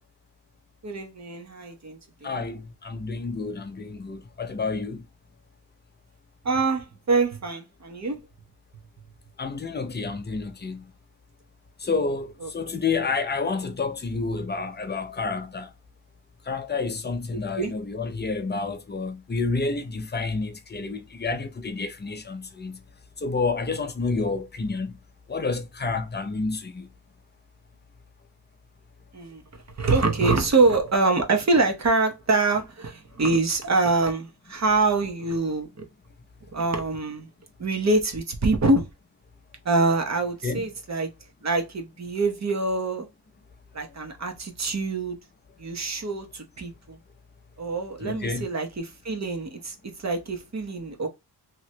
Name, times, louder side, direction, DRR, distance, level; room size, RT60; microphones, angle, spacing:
voice 1, 0.8-2.5 6.4-8.2 12.4-12.5 17.6-17.7 29.1-35.9 36.5-37.3 37.6-38.9 39.6-41.1 41.4-43.1 43.7-45.2 45.6-47.0 47.6-51.1, right 3 dB, 40° right, 1.0 m, -25 dB
voice 2, 2.2-5.0 9.4-10.8 11.8-15.7 16.5-22.8 23.2-24.9 25.3-26.9 40.4-40.6 48.0-48.5, left 4 dB, 25° left, 0.6 m, -29 dB
3.1 x 2.9 x 2.7 m
wide cardioid pair, 120°, 41 cm